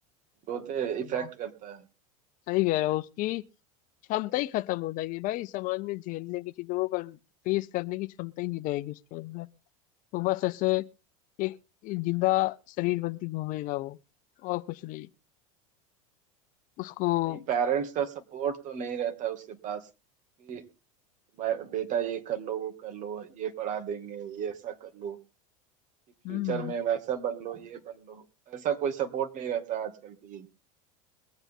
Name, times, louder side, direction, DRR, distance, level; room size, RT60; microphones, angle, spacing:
voice 1, 0.5-1.8 17.3-19.9 20.4-20.7 21.4-25.2 26.3-30.5, right 9 dB, 45° right, 2.3 m, -32 dB
voice 2, 2.5-3.4 4.1-7.2 7.4-9.5 10.1-10.8 11.4-11.5 11.8-14.0 14.4-15.1 16.8-17.4 26.2-26.7, left 19 dB, 50° left, 0.7 m, -30 dB
22.5 x 8.0 x 3.7 m
hypercardioid pair, 100°, 17 cm